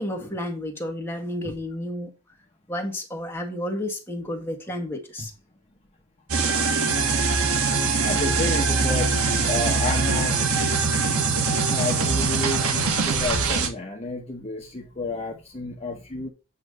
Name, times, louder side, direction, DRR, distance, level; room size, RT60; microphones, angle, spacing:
voice 1, 0.0-2.1 2.7-5.3 8.5-8.6, left 1 dB, 10° left, 1.6 m, -31 dB
sound 1, 6.3-13.7, right 4 dB, 75° right, 1.4 m, -22 dB
voice 2, 8.0-9.1 9.5-10.7 11.7-16.3, left 2 dB, 30° left, 0.9 m, -31 dB
8.1 x 3.2 x 5.0 m
head